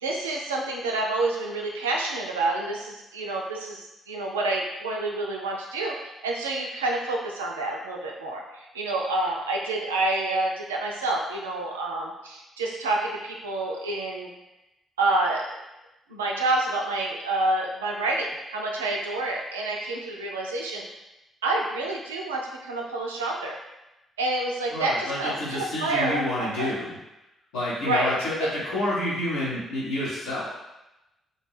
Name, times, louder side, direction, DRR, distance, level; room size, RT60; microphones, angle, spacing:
voice 1, 0.0-14.3 15.0-15.4 16.1-20.8 21.4-23.6 24.2-26.7 27.8-28.1 28.4-28.5, right 2 dB, 90° right, -1 dB, 0.3 m, -28 dB
voice 2, 24.7-26.9 27.5-30.5, left 1 dB, 80° left, -9 dB, 1.0 m, -29 dB
2.6 x 2.2 x 3.2 m, 0.95 s
hypercardioid pair, 40°, 0 cm